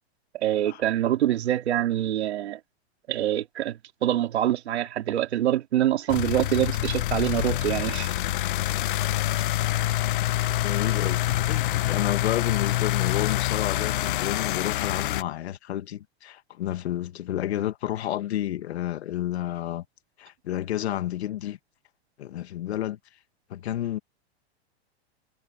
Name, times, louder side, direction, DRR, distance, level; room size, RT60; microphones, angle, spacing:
voice 1, 0.3-2.6 3.1-8.1, right 12 dB, 90° right, 3.2 m, -25 dB
sound 1, 6.1-15.2, left 14 dB, 55° left, 0.8 m, -26 dB
voice 2, 10.6-19.8 20.2-21.6 22.2-23.0 23.5-24.0, left 12 dB, 85° left, 2.2 m, -30 dB
supercardioid pair, 175°, 32 cm